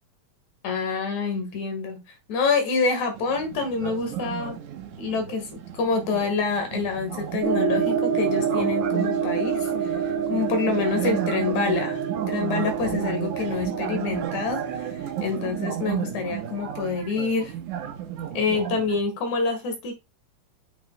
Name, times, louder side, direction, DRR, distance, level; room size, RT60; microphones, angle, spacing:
voice 1, 0.6-2.0 2.3-4.6 5.0-12.0 12.3-17.5 18.3-19.9, left 4 dB, 75° left, 3.1 m, -27 dB
sound 1, 3.1-19.0, right 10 dB, 90° right, 2.5 m, -34 dB
sound 2, 7.4-16.9, right 7 dB, 50° right, 1.6 m, -28 dB
8.0 x 6.2 x 2.3 m
omnidirectional pair, 3.3 m